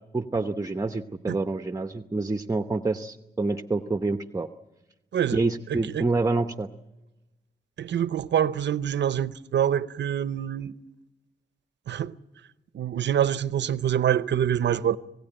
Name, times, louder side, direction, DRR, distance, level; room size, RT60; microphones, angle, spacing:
voice 1, 0.1-4.5 5.3-6.7, right 3 dB, 20° right, 0.8 m, -27 dB
voice 2, 5.1-6.0 7.8-10.8 11.9-12.2 12.7-15.0, right 9 dB, 85° right, 0.7 m, -26 dB
26.5 x 16.5 x 9.0 m
cardioid pair, 80°, 18 cm